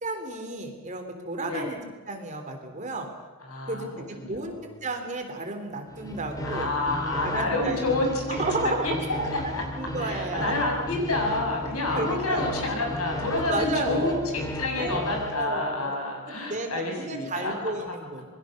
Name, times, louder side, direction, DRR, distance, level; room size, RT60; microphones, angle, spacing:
voice 1, 0.0-1.8 2.1-3.1 3.7-4.5 4.8-6.7 7.2-7.9 8.3-9.3 9.8-10.5 11.9-12.5 13.4-14.2 14.8-15.0 15.3-16.0 16.2-18.3, right 2 dB, 35° right, 5 dB, 3.5 m, -32 dB
voice 2, 3.5-3.9 4.2-4.7 6.4-8.4 8.8-8.9 9.5-9.6 10.0-17.5, left 2 dB, 85° left, 1 dB, 6.5 m, -29 dB
sound 1, 5.9-15.4, equal, 15° left, 2.4 m, -35 dB
26.5 x 22.0 x 6.6 m, 1.2 s
head